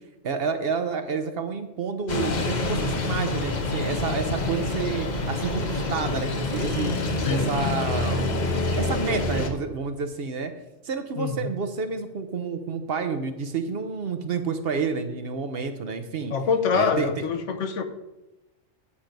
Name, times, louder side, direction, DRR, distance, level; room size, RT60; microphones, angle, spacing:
voice 1, 0.2-6.9 7.3-8.3 8.8-10.5 10.8-16.3 16.7-17.3, right 5 dB, 55° right, 0.8 m, -29 dB
sound 1, 2.1-9.5, left 2 dB, 40° left, 0.9 m, -27 dB
voice 2, 11.2-11.6 16.3-17.8, left 6 dB, 75° left, 1.1 m, -25 dB
8.5 x 5.9 x 5.1 m
omnidirectional pair, 1.3 m